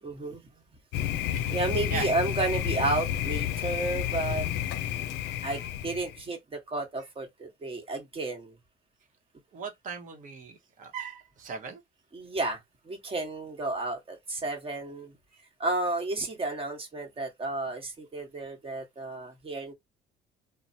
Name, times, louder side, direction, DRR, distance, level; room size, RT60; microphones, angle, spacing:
voice 1, 0.0-0.5 1.2-4.5 5.4-8.6 12.1-12.6 12.8-15.1 15.6-19.7, right 2 dB, 35° right, 1.2 m, -32 dB
Thunder, 0.9-6.2, left 11 dB, 85° left, 0.4 m, -31 dB
voice 2, 5.2-5.7 9.5-11.8, right 5 dB, 50° right, 1.0 m, -39 dB
3.0 x 2.1 x 2.7 m
cardioid pair, 110°, 17 cm